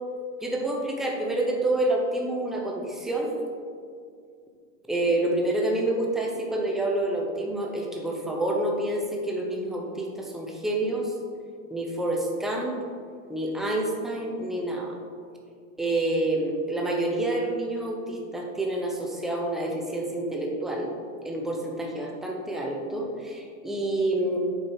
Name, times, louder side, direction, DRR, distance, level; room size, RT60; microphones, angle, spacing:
voice 1, 0.4-3.4 4.9-11.1 11.7-12.8 13.3-15.0 15.8-20.9 21.2-24.4, right 1 dB, ahead, -1 dB, 0.6 m, -28 dB
7.6 x 4.4 x 4.7 m, 2.2 s
supercardioid pair, 140°, 41 cm